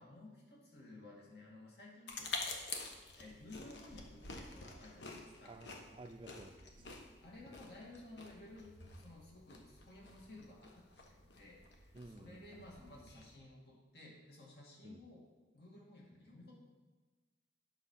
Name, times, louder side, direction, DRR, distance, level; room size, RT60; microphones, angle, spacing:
voice 1, 0.0-2.4 3.2-5.6 6.8-15.3 15.5-16.5, left 2 dB, 60° left, -3 dB, 2.5 m, -55 dB
sound 1, 2.1-13.4, left 3 dB, 80° left, 1.2 m, -49 dB
voice 2, 5.5-6.9 11.9-12.7 14.8-15.0, right 2 dB, 30° right, 9 dB, 0.4 m, -54 dB
9.0 x 6.3 x 5.7 m, 1.3 s
head